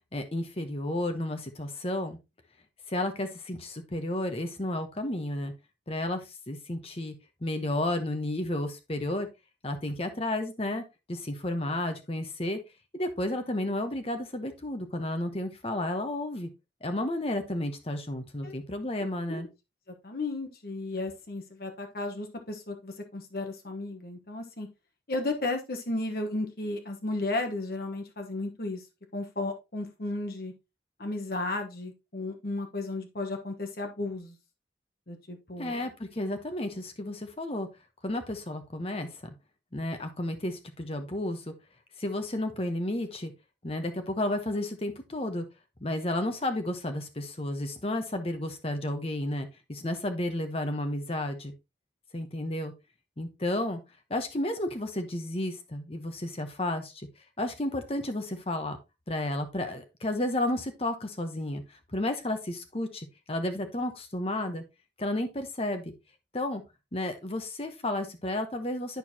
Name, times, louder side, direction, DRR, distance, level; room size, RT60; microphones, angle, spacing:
voice 1, 0.1-2.2 2.9-5.5 5.9-7.1 7.4-9.3 9.6-10.8 11.1-12.6 12.9-16.5 16.8-19.5 35.6-37.7 38.0-39.2 39.7-41.5 42.0-43.3 43.6-45.4 45.8-51.5 52.1-52.7 53.2-53.8 54.1-57.1 57.4-58.8 59.1-64.6 65.0-65.9 66.3-66.6 66.9-69.0, left 1 dB, 30° left, 7 dB, 1.0 m, -32 dB
voice 2, 20.0-24.7 25.1-28.8 29.1-30.5 31.0-34.4 35.1-35.9, left 2 dB, 55° left, 4 dB, 1.1 m, -34 dB
10.5 x 4.6 x 2.8 m, 0.25 s
head